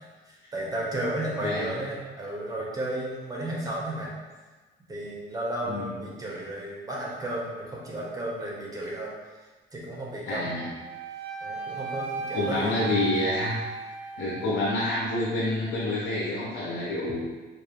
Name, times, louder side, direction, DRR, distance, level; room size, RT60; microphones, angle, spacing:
voice 1, 0.0-4.1 4.9-9.1 9.7-10.6 11.4-12.9 14.4-14.6, right 1 dB, 20° right, -4 dB, 1.2 m, -33 dB
voice 2, 1.4-1.7 5.6-5.9 10.3-10.7 12.3-13.6 14.2-17.2, left 2 dB, 80° left, -5 dB, 0.8 m, -28 dB
Wind instrument woodwind instrument, 10.6-14.8, right 6 dB, 85° right, 0.5 m, -36 dB
4.2 x 2.6 x 3.4 m, 1.3 s
cardioid pair, 90°, 20 cm